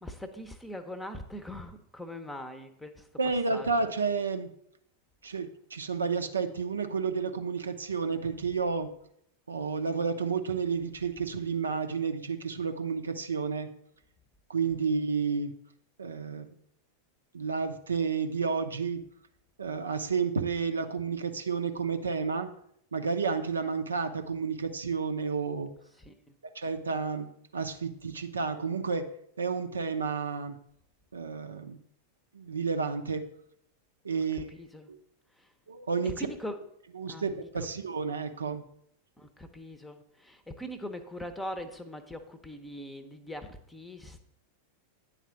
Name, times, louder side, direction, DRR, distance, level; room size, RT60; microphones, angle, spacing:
voice 1, 0.0-3.1 3.5-3.9 26.0-26.3 34.1-34.2 34.5-34.9 36.2-36.5 37.1-37.3 39.2-44.2, equal, 5° left, 10 dB, 0.8 m, -41 dB
voice 2, 3.2-4.5 5.2-8.9 9.5-13.7 14.5-15.5 16.0-16.5 17.3-19.0 19.6-22.5 22.9-25.7 26.5-29.1 29.4-30.6 31.1-31.8 32.3-33.3 34.0-34.5 34.9-35.0 35.7-36.3 36.9-38.6, right 5 dB, 75° right, 7 dB, 0.6 m, -31 dB
9.2 x 4.1 x 5.7 m, 0.71 s
figure-of-eight pair, 90°, 0 cm